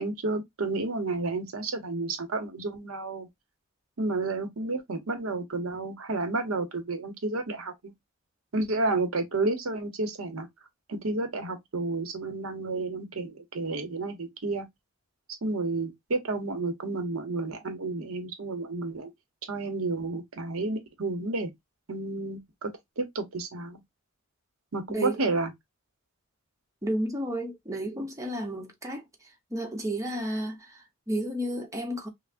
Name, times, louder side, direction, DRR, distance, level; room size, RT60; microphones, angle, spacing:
voice 1, 0.0-3.3 4.0-7.9 8.5-10.5 10.9-14.7 15.4-19.1 19.5-21.5 21.9-23.8 24.7-25.5, right 2 dB, 80° right, 0.9 m, -31 dB
voice 2, 26.8-29.0 29.5-32.1, right 1 dB, 15° right, 0.8 m, -32 dB
5.7 x 2.1 x 2.5 m
head